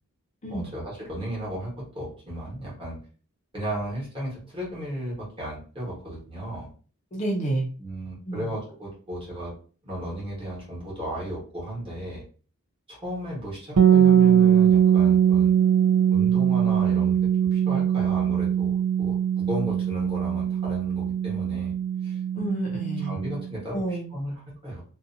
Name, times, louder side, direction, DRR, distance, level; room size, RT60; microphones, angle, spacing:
voice 1, 0.5-3.0 3.5-6.7 7.8-9.5 9.8-12.2 12.9-15.5 16.1-17.2 17.5-21.7 22.0-22.2 23.0-24.8, right 1 dB, 25° right, -5 dB, 1.1 m, -35 dB
voice 2, 7.1-7.7 8.3-8.5 22.3-23.2 23.7-24.2, right 1 dB, 30° left, -1 dB, 0.5 m, -29 dB
sound 1, 13.8-23.5, right 9 dB, 80° right, 0.3 m, -21 dB
2.6 x 2.2 x 2.5 m, 0.40 s
head